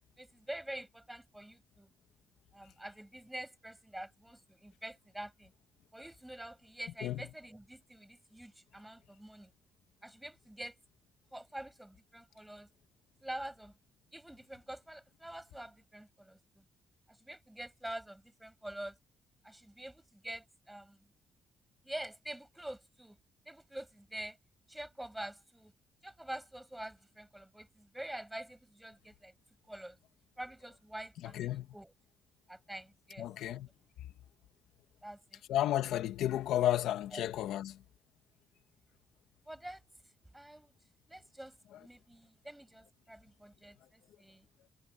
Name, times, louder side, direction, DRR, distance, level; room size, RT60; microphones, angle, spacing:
voice 1, 0.2-1.9 2.5-5.5 5.9-9.5 10.0-10.7 11.3-12.7 13.2-13.7 14.1-16.6 17.2-19.0 19.4-21.0 21.8-23.2 23.5-24.4 24.7-25.7 26.0-29.3 29.7-30.0 30.4-31.9 32.5-33.6 35.0-35.4 37.1-37.2 39.5-39.8 40.3-40.7 41.1-44.5, right 1 dB, 5° right, 7.3 m, -46 dB
voice 2, 31.2-31.7 33.2-33.7 35.5-37.8, left 12 dB, 85° left, 2.0 m, -32 dB
cardioid pair, 90°, 0 cm